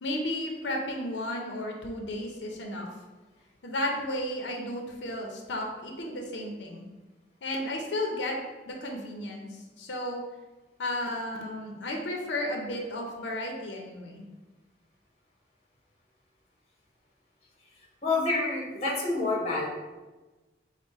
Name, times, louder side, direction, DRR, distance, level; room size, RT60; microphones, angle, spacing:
voice 1, 0.0-2.9 3.6-6.9 7.4-8.4 8.7-10.2 10.8-14.3, left 1 dB, 90° left, 1 dB, 0.6 m, -33 dB
voice 2, 18.0-19.7, left 3 dB, 35° left, -3 dB, 0.8 m, -27 dB
4.9 x 2.1 x 3.9 m, 1.2 s
head